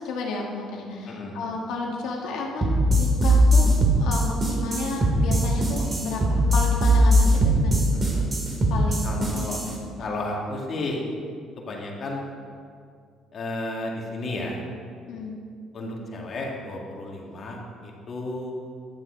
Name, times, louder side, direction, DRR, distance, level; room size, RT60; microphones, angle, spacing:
voice 1, 0.0-3.7 4.0-7.8 8.7-9.4 10.1-10.2 15.1-15.4, left 3 dB, 80° left, 0 dB, 1.7 m, -32 dB
sound 1, 2.6-9.7, equal, 30° right, 2.3 m, -20 dB
voice 2, 9.0-9.6 10.0-11.0 11.6-12.2 13.3-14.6 15.7-18.5, left 2 dB, 50° left, -2 dB, 2.3 m, -33 dB
11.0 x 7.5 x 5.2 m, 2.2 s
cardioid pair, 90°, 0 cm